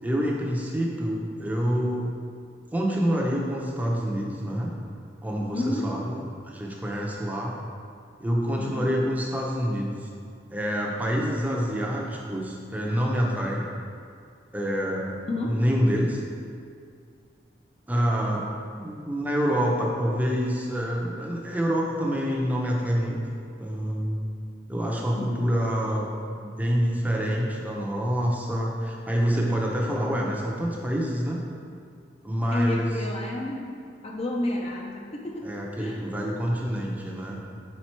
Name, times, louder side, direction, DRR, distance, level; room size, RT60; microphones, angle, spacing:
voice 1, 0.0-2.1 2.7-4.7 5.2-6.1 6.4-7.5 8.2-10.1 10.5-13.7 14.5-15.2 15.4-16.2 17.9-18.4 18.8-23.2 23.6-24.2 24.7-31.4 32.2-32.9 35.4-37.4, equal, 10° right, -2 dB, 0.6 m, -27 dB
voice 2, 5.5-6.0 8.6-9.0 15.3-15.6 25.1-25.3 32.5-33.7 34.0-36.0, left 1 dB, 35° left, -1 dB, 0.5 m, -31 dB
5.1 x 4.4 x 4.4 m, 2.3 s
head